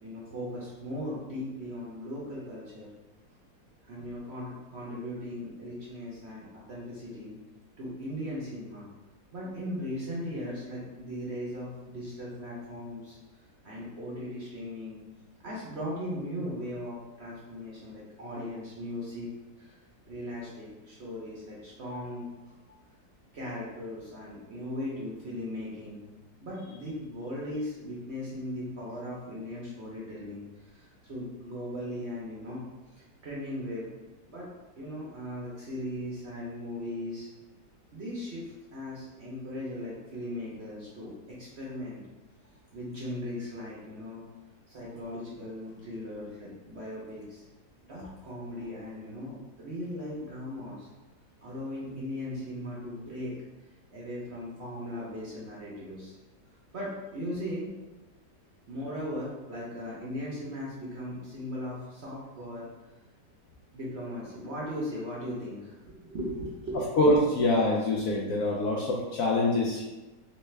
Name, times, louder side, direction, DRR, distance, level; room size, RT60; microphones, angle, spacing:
voice 1, 0.0-2.9 3.8-7.4 7.8-8.9 9.3-13.2 13.6-15.0 15.4-19.3 19.6-19.8 20.0-22.5 23.3-26.0 26.4-33.9 34.2-37.3 37.9-42.0 42.7-44.2 44.7-47.4 47.8-50.9 51.4-53.4 53.9-56.1 56.7-57.7 58.7-62.7 63.7-66.9, left 1 dB, 50° right, -6 dB, 0.9 m, -38 dB
voice 2, 67.0-69.8, left 1 dB, 70° left, -3 dB, 0.8 m, -25 dB
3.3 x 3.2 x 3.2 m, 1.1 s
omnidirectional pair, 1.8 m